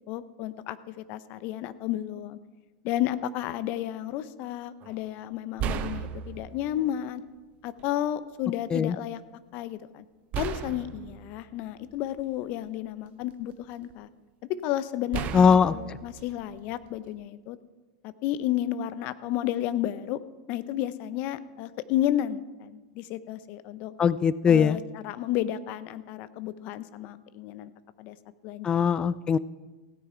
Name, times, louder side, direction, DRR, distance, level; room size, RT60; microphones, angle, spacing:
voice 1, 0.1-2.4 2.8-7.2 7.6-9.2 9.5-10.0 10.4-14.1 14.5-17.6 18.0-20.2 20.5-23.9 24.5-27.7 28.0-28.2 28.4-28.8, left 12 dB, 50° left, 15 dB, 0.7 m, -32 dB
sound 1, 4.8-5.0 5.6-6.9 7.8-7.9 10.3-12.5 13.1-13.9 15.1-17.2, right 9 dB, 40° right, 0.7 m, -36 dB
voice 2, 15.3-15.7 24.0-24.8 28.6-29.4, left 6 dB, 20° left, 18 dB, 0.4 m, -21 dB
16.5 x 9.6 x 4.5 m, 1.2 s
hypercardioid pair, 105°, 4 cm